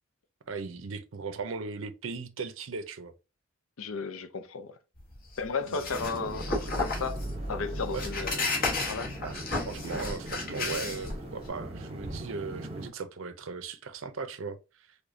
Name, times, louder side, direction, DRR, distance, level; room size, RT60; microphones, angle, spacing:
voice 1, 0.5-3.1 5.7-5.9 7.9-8.1 9.2-9.4 9.7-15.0, right 4 dB, 65° right, 0.5 m, -38 dB
voice 2, 3.8-4.8 5.4-7.2 7.5-8.4 8.8-9.1, left 4 dB, 75° left, 0.5 m, -34 dB
sound 1, 5.0-11.5, left 2 dB, 40° left, 1.1 m, -33 dB
sound 2, 5.9-12.9, right 1 dB, 25° right, 0.7 m, -41 dB
4.8 x 2.2 x 2.6 m
head